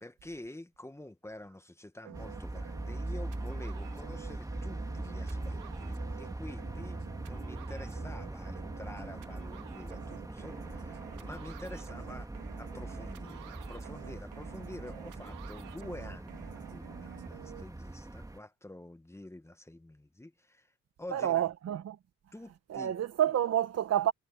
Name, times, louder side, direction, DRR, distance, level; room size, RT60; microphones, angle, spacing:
voice 1, 0.0-20.7 21.0-21.5 22.3-22.9, left 1 dB, 10° left, 1.4 m, -48 dB
sound 1, 2.0-17.6, right 13 dB, 85° right, 2.0 m, -49 dB
sound 2, 2.1-18.4, right 2 dB, 10° right, 2.2 m, -41 dB
voice 2, 21.1-22.0 22.7-24.1, right 11 dB, 55° right, 1.2 m, -29 dB
cardioid pair, 90°, 30 cm